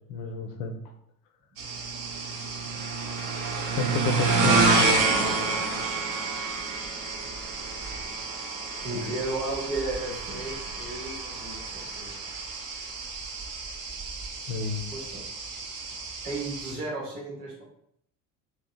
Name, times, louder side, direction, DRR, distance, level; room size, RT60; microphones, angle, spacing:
voice 1, 0.1-0.8 3.8-4.9 14.5-14.9, left 5 dB, 45° left, 4 dB, 0.4 m, -30 dB
sound 1, 1.6-16.7, right 3 dB, 45° right, 0.6 m, -29 dB
voice 2, 8.8-12.1 14.9-15.2 16.2-17.6, right 2 dB, 75° right, -3 dB, 0.9 m, -34 dB
2.7 x 2.1 x 2.2 m, 0.73 s
figure-of-eight pair, 60°, 46 cm